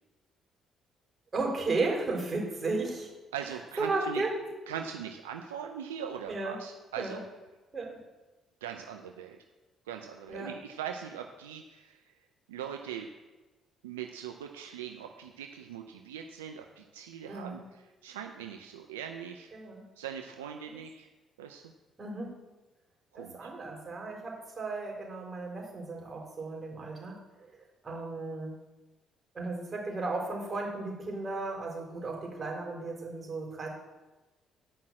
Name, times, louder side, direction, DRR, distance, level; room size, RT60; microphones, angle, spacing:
voice 1, 1.3-3.1 3.8-4.3 6.3-6.6 7.0-7.2 7.7-8.0 10.3-10.5 17.3-17.6 19.5-19.8 20.7-20.8 22.0-22.4 23.1-27.5 27.8-28.5 29.3-33.7, right 3 dB, 35° right, -1 dB, 4.1 m, -34 dB
voice 2, 3.3-4.2 4.7-7.2 8.6-9.4 9.9-12.0 12.5-13.1 13.8-17.6 18.0-19.5 20.0-21.1 21.4-21.7 23.1-23.5, right 8 dB, 90° right, 4 dB, 0.5 m, -41 dB
9.8 x 5.7 x 7.4 m, 1.2 s
hypercardioid pair, 50°, 0 cm